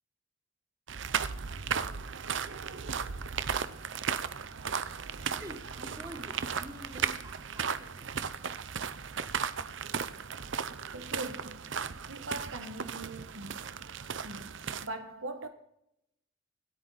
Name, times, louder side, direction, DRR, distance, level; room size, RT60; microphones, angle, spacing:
sound 1, 0.9-14.9, right 6 dB, 65° right, 0.7 m, -36 dB
voice 1, 5.4-7.6 7.9-8.0, equal, 20° right, 3.9 m, -47 dB
voice 2, 10.9-11.7 12.1-13.9 14.2-15.5, right 2 dB, 85° right, 1.3 m, -42 dB
26.0 x 8.7 x 4.1 m
head